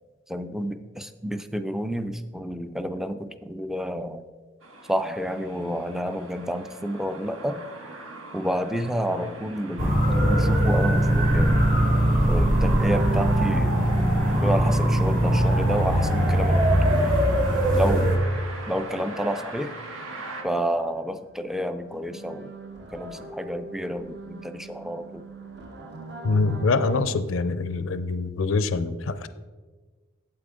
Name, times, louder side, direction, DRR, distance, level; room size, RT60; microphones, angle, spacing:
voice 1, 0.3-4.2 4.9-7.6 8.3-11.8 12.3-13.8 14.4-17.1 17.7-18.1 18.7-19.8 20.4-22.5 22.9-25.3, equal, ahead, 10 dB, 0.3 m, -30 dB
sound 1, 4.6-20.4, right 2 dB, 80° right, 1.3 m, -39 dB
sound 2, 9.8-18.2, right 1 dB, 40° right, 1.4 m, -21 dB
sound 3, 12.5-21.1 21.4-27.0, right 3 dB, 60° right, 1.2 m, -41 dB
voice 2, 26.2-29.3, left 3 dB, 70° left, 13 dB, 0.5 m, -24 dB
8.5 x 8.0 x 3.7 m, 1.4 s
head